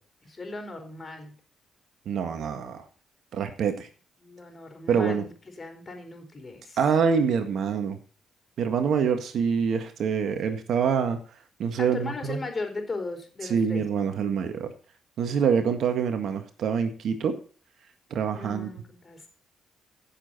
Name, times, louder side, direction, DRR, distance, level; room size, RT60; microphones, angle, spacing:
voice 1, 0.2-1.3 4.2-5.3 5.6-7.0 11.8-13.8 18.3-19.3, left 3 dB, 35° left, 4 dB, 4.7 m, -37 dB
voice 2, 2.1-2.8 3.3-3.9 4.9-5.2 6.8-8.0 8.6-11.2 11.6-12.4 13.5-14.7 15.2-17.4 18.1-18.7, right 6 dB, 65° right, 8 dB, 1.7 m, -25 dB
15.5 x 7.4 x 4.2 m, 0.39 s
hypercardioid pair, 50°, 0 cm